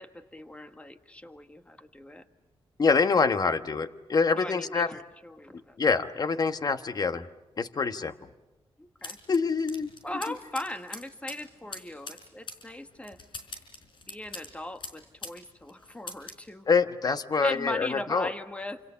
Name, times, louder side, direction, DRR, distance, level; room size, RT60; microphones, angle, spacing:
voice 1, 0.0-2.2 4.3-5.8 8.8-9.2 10.0-13.2 14.1-16.7 17.4-18.8, left 1 dB, 15° left, 8 dB, 1.7 m, -39 dB
voice 2, 2.8-4.9 5.8-7.2 7.6-8.1 9.3-9.9 16.7-18.3, left 4 dB, 45° left, 10 dB, 1.3 m, -25 dB
sound 1, 9.0-15.4 15.7-16.5, left 3 dB, 60° left, 4.6 m, -43 dB
28.5 x 27.0 x 7.0 m, 1.1 s
cardioid pair, 100°, 10 cm